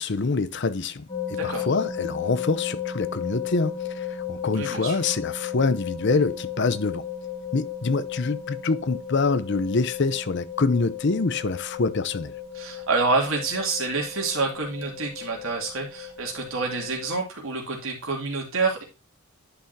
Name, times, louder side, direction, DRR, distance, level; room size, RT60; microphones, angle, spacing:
voice 1, 0.0-7.0 7.5-12.3, left 3 dB, 50° left, 0.6 m, -25 dB
sound 1, 1.1-17.1, left 8 dB, 25° left, 4.5 m, -35 dB
voice 2, 1.3-1.7 4.5-5.1 12.5-18.8, right 3 dB, 65° right, 2.7 m, -27 dB
10.0 x 5.7 x 2.7 m
head